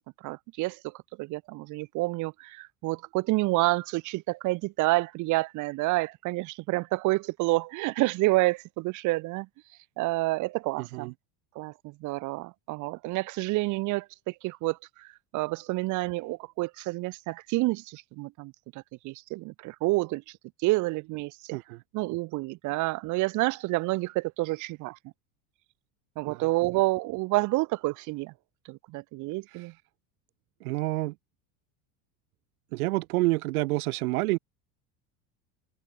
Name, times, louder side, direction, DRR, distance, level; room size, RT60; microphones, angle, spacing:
voice 1, 0.2-0.9 1.2-9.5 10.0-11.1 11.6-15.1 15.3-18.5 19.0-20.2 20.6-21.6 21.9-25.0 26.2-28.3 28.7-29.7, right 22 dB, 45° right, 0.8 m, -29 dB
voice 2, 10.8-11.1 21.5-21.8 26.3-26.8 29.5-29.8 30.6-31.2 32.7-34.4, right 22 dB, 85° right, 3.2 m, -29 dB
cardioid pair, 150°, 43 cm